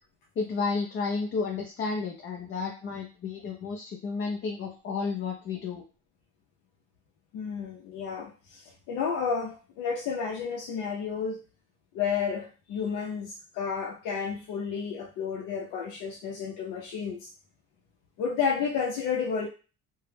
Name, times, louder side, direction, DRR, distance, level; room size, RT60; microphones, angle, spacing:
voice 1, 0.4-5.8, left 4 dB, 40° left, 1 dB, 0.5 m, -32 dB
voice 2, 7.3-11.4 11.9-17.3 18.2-19.5, left 6 dB, 85° left, -1 dB, 0.6 m, -31 dB
2.2 x 2.0 x 3.2 m, 0.34 s
cardioid pair, 115°, 31 cm